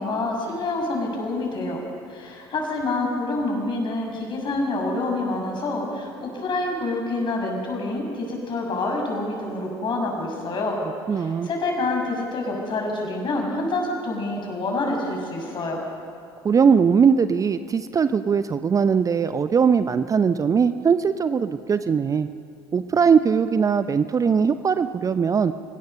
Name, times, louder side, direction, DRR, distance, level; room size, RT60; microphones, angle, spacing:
voice 1, 0.0-1.8 2.1-10.8 11.1-15.8, left 2 dB, 40° left, 1 dB, 6.6 m, -27 dB
voice 2, 11.1-11.5 16.4-22.3 22.7-25.5, right 6 dB, 25° right, 12 dB, 0.7 m, -20 dB
29.0 x 17.0 x 6.7 m, 2.5 s
figure-of-eight pair, 60°, 13 cm